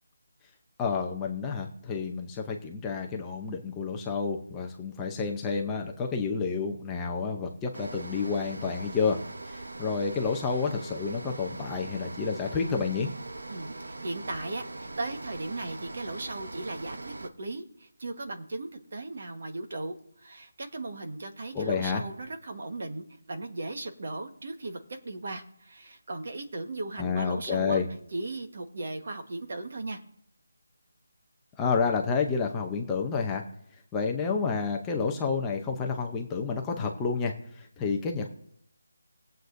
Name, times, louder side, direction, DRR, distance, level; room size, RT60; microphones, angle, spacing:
voice 1, 0.8-9.2 9.5-13.1 21.5-22.0 27.0-27.9 31.6-33.4 33.9-38.3, left 5 dB, 10° left, 0 dB, 0.6 m, -29 dB
sound 1, 7.7-17.3, right 2 dB, 80° right, 1.0 m, -41 dB
voice 2, 13.5-27.8 28.1-30.0, right 2 dB, 40° right, 5 dB, 1.3 m, -37 dB
19.5 x 7.8 x 2.6 m, 0.73 s
figure-of-eight pair, 175°, 0 cm